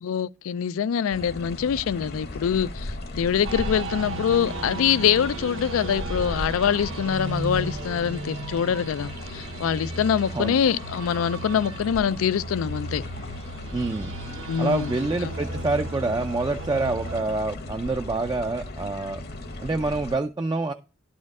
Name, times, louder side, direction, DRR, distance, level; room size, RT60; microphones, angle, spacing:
voice 1, 0.0-13.0 14.5-14.9 15.2-15.4, left 8 dB, 85° left, 0.3 m, -24 dB
sound 1, 1.1-20.2, left 1 dB, 50° left, 0.9 m, -37 dB
sound 2, 3.4-17.2, right 2 dB, 70° right, 0.9 m, -35 dB
voice 2, 13.7-14.1 14.6-19.2 19.6-20.7, right 3 dB, 20° right, 0.4 m, -26 dB
11.0 x 4.3 x 4.7 m
head